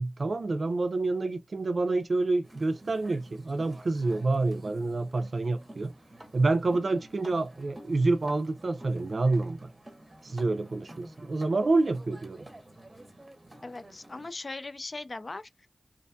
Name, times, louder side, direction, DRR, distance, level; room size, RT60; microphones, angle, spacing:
voice 1, 0.0-5.9 6.3-9.7 10.2-12.5, right 3 dB, 60° right, 0.4 m, -28 dB
sound 1, 2.4-14.3, right 1 dB, 30° right, 0.7 m, -50 dB
voice 2, 13.6-15.7, left 3 dB, 45° left, 0.3 m, -39 dB
2.5 x 2.2 x 2.6 m
wide cardioid pair, 65°, 0 cm